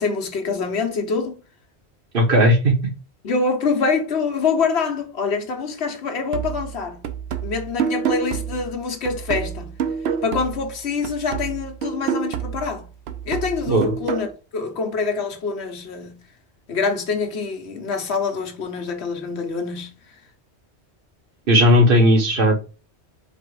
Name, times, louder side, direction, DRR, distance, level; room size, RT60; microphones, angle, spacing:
voice 1, 0.0-1.4 3.2-7.0 7.4-9.7 10.2-12.9 13.3-14.3 14.5-16.2 16.7-19.9, left 4 dB, 70° left, 1.2 m, -25 dB
voice 2, 2.1-2.7 13.7-13.9 21.5-22.6, equal, 55° right, 1.2 m, -16 dB
sound 1, 6.3-10.8 11.0-14.3, right 7 dB, 70° right, 0.8 m, -28 dB
4.7 x 2.4 x 4.7 m
omnidirectional pair, 1.1 m